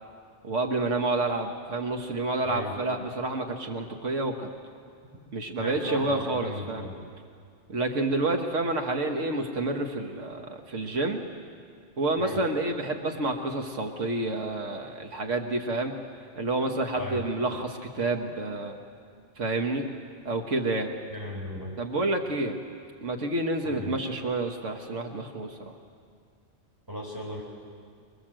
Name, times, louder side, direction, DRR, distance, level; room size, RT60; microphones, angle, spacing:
voice 1, 0.4-4.5 5.3-6.9 7.7-11.2 12.0-15.9 16.4-18.8 19.4-19.9 20.3-20.9 21.8-22.6 23.0-25.7, right 2 dB, 80° right, 3 dB, 1.8 m, -29 dB
voice 2, 5.6-7.0 12.2-12.4 16.9-17.2 21.1-21.7 23.6-24.0 26.9-27.4, equal, 15° right, -4 dB, 4.2 m, -35 dB
26.0 x 21.5 x 7.7 m, 2.2 s
omnidirectional pair, 1.2 m